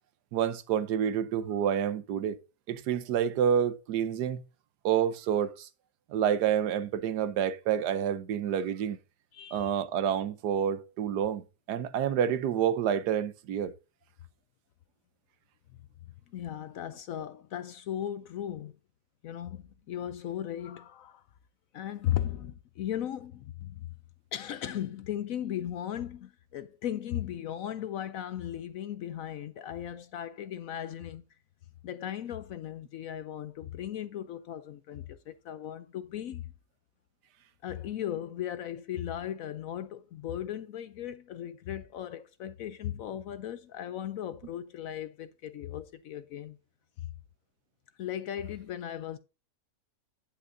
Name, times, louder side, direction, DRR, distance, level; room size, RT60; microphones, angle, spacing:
voice 1, 0.3-2.4 2.7-4.4 4.8-5.7 6.1-9.0 9.5-11.4 11.7-13.7, right 9 dB, 75° right, 1.3 m, -28 dB
voice 2, 9.3-9.8 16.3-18.7 19.2-21.2 21.7-23.9 24.3-31.2 31.8-36.4 37.6-46.6 48.0-49.2, left 11 dB, 70° left, 0.9 m, -37 dB
9.8 x 9.1 x 2.6 m
omnidirectional pair, 1.8 m